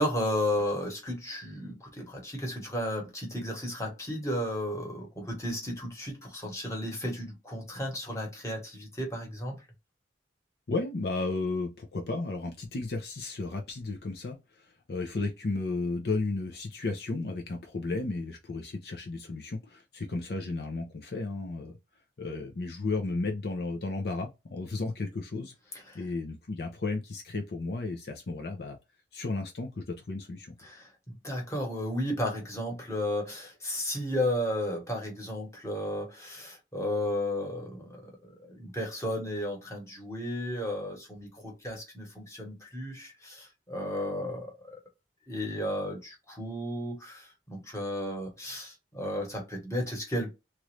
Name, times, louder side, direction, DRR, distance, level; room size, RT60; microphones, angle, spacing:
voice 1, 0.0-9.6 25.9-26.0 30.6-44.8 45.3-50.3, left 1 dB, 15° left, 1.2 m, -33 dB
voice 2, 10.7-21.8 22.2-25.5 25.9-28.8 29.1-30.5, left 3 dB, 60° left, 0.6 m, -33 dB
3.0 x 2.5 x 3.1 m
head